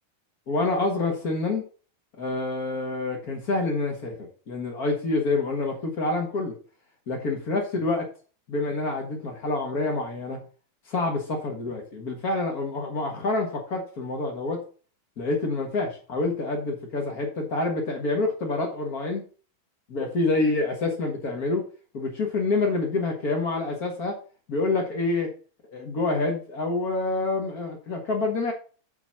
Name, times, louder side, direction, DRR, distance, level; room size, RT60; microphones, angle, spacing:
voice 1, 0.5-1.6 2.1-6.5 7.1-8.1 8.5-10.4 10.9-14.6 15.2-19.2 19.9-21.7 21.9-24.2 24.5-25.3 25.7-28.5, left 3 dB, 85° left, 1 dB, 0.8 m, -27 dB
8.0 x 4.9 x 5.8 m, 0.38 s
omnidirectional pair, 4.4 m